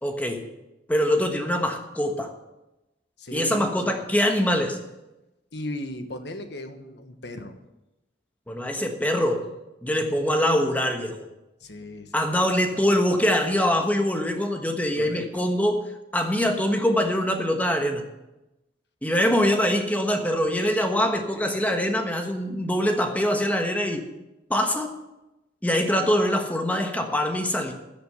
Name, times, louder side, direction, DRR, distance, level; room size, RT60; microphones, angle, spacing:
voice 1, 0.0-0.4 0.9-2.3 3.3-4.8 8.5-9.5 9.8-11.3 12.1-15.8 16.1-18.1 19.0-24.1 24.5-24.9 25.6-27.7, equal, 10° left, 4 dB, 1.3 m, -23 dB
voice 2, 3.2-4.0 5.5-7.5 11.6-12.1 12.7-13.0 15.0-15.4 21.1-21.6, left 1 dB, 65° left, 7 dB, 1.3 m, -37 dB
13.5 x 6.9 x 7.8 m, 0.97 s
head